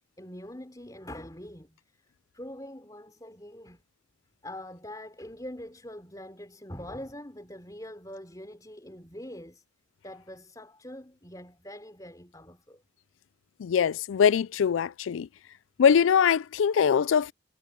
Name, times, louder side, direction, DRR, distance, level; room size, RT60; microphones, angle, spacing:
voice 1, 0.2-1.8 2.3-3.8 4.4-9.6 10.0-12.8, left 1 dB, 20° left, 3.4 m, -43 dB
voice 2, 13.6-15.3 15.8-17.3, left 7 dB, 90° left, 0.4 m, -22 dB
head